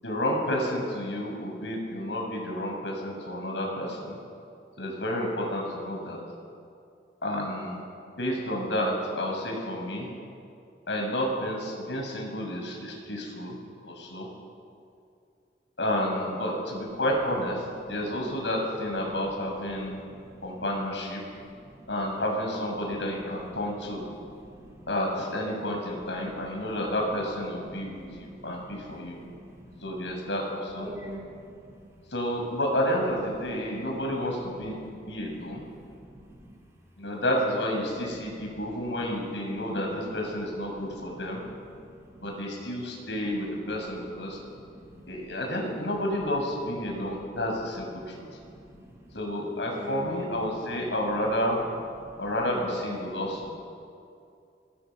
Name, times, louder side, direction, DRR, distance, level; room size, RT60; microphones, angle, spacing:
voice 1, 0.0-4.2 4.8-6.2 7.2-7.8 8.2-10.1 10.9-13.6 13.8-14.3 15.8-20.0 20.4-21.2 21.9-24.0 24.9-29.2 29.8-30.9 32.1-34.8 35.1-35.6 37.0-41.4 42.2-44.4 45.1-48.2 49.1-51.6 52.2-53.5, equal, 85° left, 0 dB, 7.2 m, -30 dB
voice 2, 20.0-20.6 21.3-21.9 22.8-23.4 23.8-24.9 26.2-26.7 27.5-30.1 30.8-31.8 33.7-33.9 34.5-36.6 38.2-38.9 39.5-39.8 40.7-42.2 43.2-43.7 44.0-45.3 46.8-47.2 48.1-49.2 49.7-50.1 50.9-51.0 52.1-52.3 53.1-53.4, equal, 15° right, -3 dB, 5.2 m, -48 dB
27.0 x 21.5 x 7.4 m, 2.5 s
head